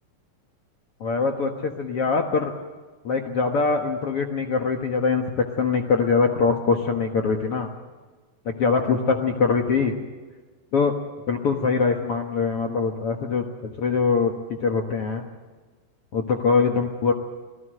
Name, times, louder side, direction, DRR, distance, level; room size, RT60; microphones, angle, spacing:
voice 1, 1.0-2.5 3.0-7.7 8.4-9.9 10.7-10.9 11.3-14.3 14.6-15.2 16.1-17.1, left 5 dB, 55° left, 3 dB, 1.7 m, -23 dB
25.5 x 18.0 x 7.8 m, 1.3 s
omnidirectional pair, 4.4 m